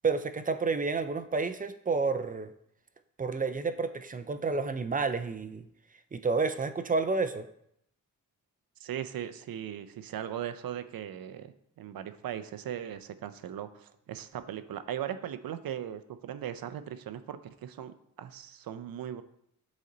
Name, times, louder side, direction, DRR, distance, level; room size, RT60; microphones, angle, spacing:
voice 1, 0.0-2.5 3.2-5.6 6.1-7.5, right 4 dB, 25° right, 11 dB, 0.5 m, -30 dB
voice 2, 8.8-19.2, right 10 dB, 90° right, 11 dB, 0.6 m, -38 dB
8.2 x 4.1 x 3.9 m, 0.74 s
wide cardioid pair, 105°, 34 cm